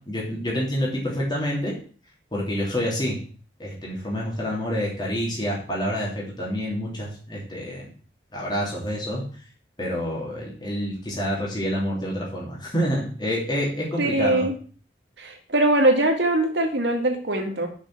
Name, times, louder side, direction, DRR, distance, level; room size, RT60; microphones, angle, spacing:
voice 1, 0.1-1.7 2.3-3.2 3.6-7.9 8.3-9.2 9.8-14.5, equal, 25° left, -4 dB, 3.0 m, -27 dB
voice 2, 14.0-14.6 15.2-17.7, right 1 dB, 70° right, 3 dB, 2.1 m, -22 dB
6.4 x 6.3 x 7.3 m, 0.41 s
head